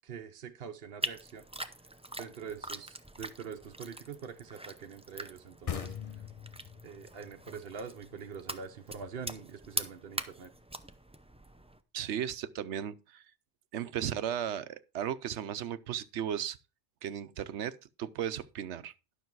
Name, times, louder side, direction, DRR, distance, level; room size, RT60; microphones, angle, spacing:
voice 1, 0.0-1.4 2.2-6.2 6.8-10.5, right 6 dB, 60° right, 1.0 m, -44 dB
sound 1, 1.0-11.8, right 1 dB, 10° right, 0.4 m, -43 dB
sound 2, 5.7-9.1, left 8 dB, 35° left, 0.7 m, -42 dB
voice 2, 11.9-13.2 13.7-16.6 17.0-18.9, right 9 dB, 80° right, 1.0 m, -35 dB
12.0 x 6.5 x 4.6 m
omnidirectional pair, 1.2 m